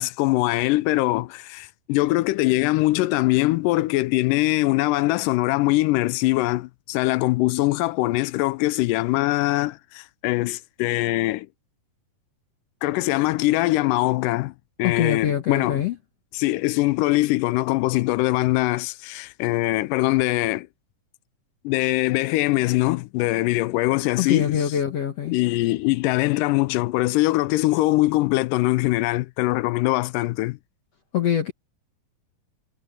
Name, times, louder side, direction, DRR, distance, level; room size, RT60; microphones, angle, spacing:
voice 1, 0.0-11.5 12.8-14.5 14.8-15.8 16.3-20.7 21.6-24.6 25.3-30.6, left 19 dB, 85° left, 2.2 m, -22 dB
voice 2, 14.8-16.0 24.2-25.4 31.1-31.5, left 9 dB, 55° left, 2.4 m, -24 dB
omnidirectional pair, 3.8 m